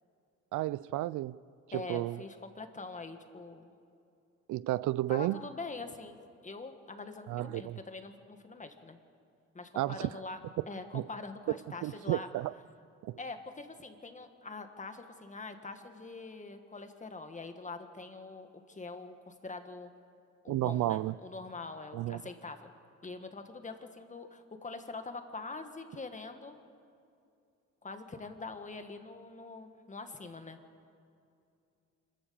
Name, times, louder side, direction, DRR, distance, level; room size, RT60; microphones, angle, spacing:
voice 1, 0.5-1.4 1.7-2.2 4.5-5.4 7.3-7.8 9.8-10.1 10.9-11.1 11.8-12.5 13.0-13.2 20.5-21.1 21.9-22.2, right 16 dB, 75° right, 0.5 m, -32 dB
voice 2, 1.7-3.7 5.1-9.0 9.5-10.4 10.7-12.3 13.2-19.9 20.4-22.7 23.0-26.5 27.8-30.6, left 3 dB, 25° left, 1.8 m, -44 dB
26.0 x 15.0 x 7.0 m
cardioid pair, 90°, 30 cm